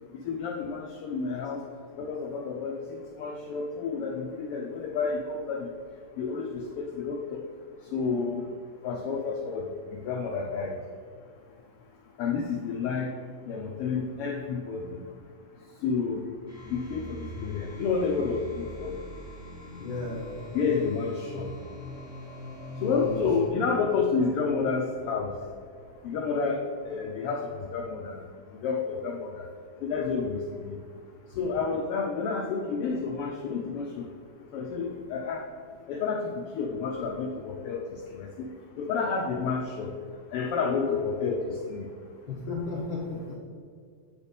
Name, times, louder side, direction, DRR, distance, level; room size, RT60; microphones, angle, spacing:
voice 1, 0.2-1.6 2.0-2.7 3.2-5.7 6.2-7.4 7.9-8.5 8.8-10.8 12.2-13.1 13.5-15.0 15.8-16.2 16.7-19.0 20.5-21.5 22.8-25.3 26.0-28.2 28.6-29.4 29.8-30.8 31.3-34.1 34.5-35.5 35.9-38.5 38.8-39.9 40.3-41.9, left 5 dB, 85° left, 0 dB, 1.2 m, -30 dB
sound 1, 16.5-23.5, equal, 20° right, 2.0 m, -42 dB
voice 2, 19.8-20.3 22.8-23.2 42.3-43.4, left 3 dB, 65° left, -4 dB, 1.3 m, -34 dB
8.6 x 4.2 x 5.1 m, 2.1 s
omnidirectional pair, 3.3 m